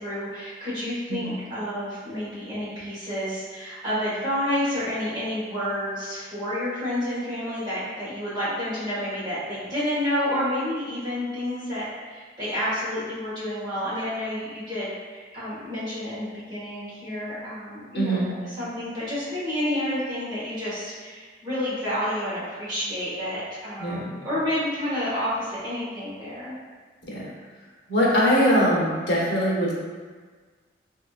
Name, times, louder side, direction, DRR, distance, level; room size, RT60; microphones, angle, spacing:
voice 1, 0.0-26.6, left 1 dB, 25° right, -12 dB, 1.5 m, -29 dB
voice 2, 17.9-18.3 23.8-24.1 27.0-27.3 27.9-29.7, equal, 85° left, -5 dB, 0.9 m, -22 dB
3.3 x 2.8 x 2.4 m, 1.5 s
head